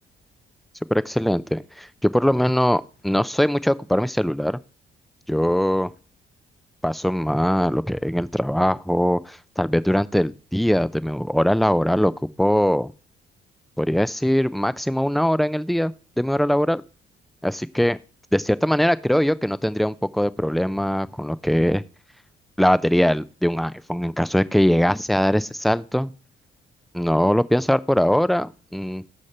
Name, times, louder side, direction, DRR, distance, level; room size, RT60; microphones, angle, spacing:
voice 1, 0.9-4.6 5.3-5.9 6.8-12.1 12.4-12.9 13.8-16.8 17.4-18.0 18.3-21.8 22.6-26.1 26.9-29.0, equal, ahead, 16 dB, 0.5 m, -21 dB
13.5 x 5.1 x 4.3 m, 0.37 s
cardioid pair, 90°, 20 cm